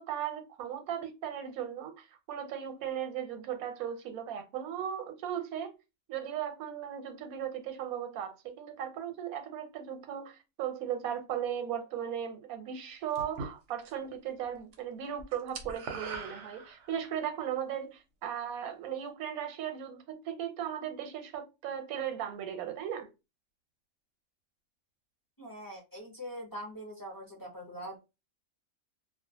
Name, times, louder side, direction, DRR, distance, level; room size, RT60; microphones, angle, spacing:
voice 1, 0.0-5.7 6.1-23.1, right 9 dB, 85° right, 1.1 m, -37 dB
sound 1, 13.1-14.1 14.4-14.8 15.0-17.1, right 4 dB, 65° right, 0.8 m, -42 dB
voice 2, 25.4-28.0, equal, 25° left, 0.5 m, -43 dB
2.3 x 2.2 x 2.6 m
omnidirectional pair, 1.5 m